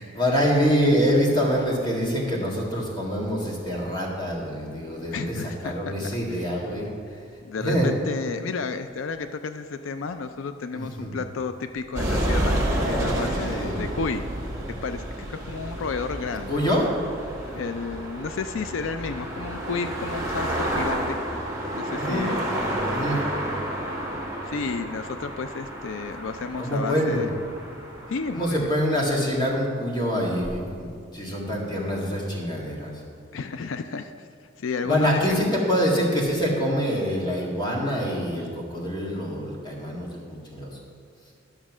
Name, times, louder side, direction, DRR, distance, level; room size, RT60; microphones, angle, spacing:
voice 1, 0.0-6.9 7.6-7.9 10.7-11.2 13.5-13.8 16.5-16.9 21.9-22.3 22.9-23.2 26.6-27.3 28.3-33.0 34.8-40.8, equal, 25° left, -3 dB, 1.9 m, -25 dB
voice 2, 5.1-6.1 7.4-12.6 12.9-14.3 14.8-16.5 17.5-21.2 21.7-22.4 24.4-27.3 28.1-28.7 33.3-34.1 34.6-35.2, left 4 dB, 90° left, 9 dB, 0.4 m, -32 dB
sound 1, 11.9-28.7, right 1 dB, 15° right, 1.8 m, -30 dB
11.0 x 6.3 x 6.1 m, 2.3 s
head